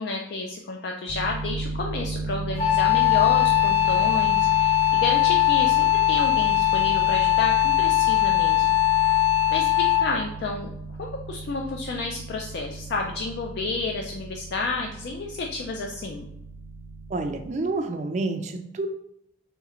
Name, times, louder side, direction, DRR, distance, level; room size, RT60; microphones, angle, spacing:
voice 1, 0.0-8.6 9.1-9.2 9.5-10.7 11.0-16.3, left 3 dB, 55° left, 1 dB, 0.3 m, -31 dB
sound 1, 1.1-17.5, right 3 dB, 80° right, 0.6 m, -35 dB
Wind instrument woodwind instrument, 2.6-10.2, left 15 dB, 30° left, 0.8 m, -20 dB
voice 2, 17.1-18.9, right 3 dB, 35° right, 6 dB, 0.3 m, -28 dB
3.2 x 3.0 x 3.6 m, 0.78 s
head